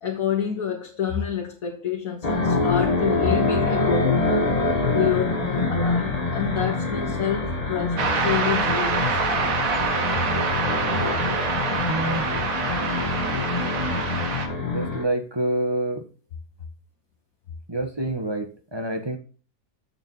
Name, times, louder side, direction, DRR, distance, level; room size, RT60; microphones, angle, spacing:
voice 1, 0.0-4.5 4.9-9.6, left 8 dB, 65° left, 1.6 m, -28 dB
sound 1, 2.2-15.0, left 3 dB, 25° left, 1.4 m, -25 dB
sound 2, 8.0-14.5, right 4 dB, 60° right, 1.7 m, -26 dB
voice 2, 11.9-12.3 14.6-16.1 17.7-19.2, right 1 dB, 15° right, 1.4 m, -27 dB
7.5 x 6.9 x 5.7 m
omnidirectional pair, 1.7 m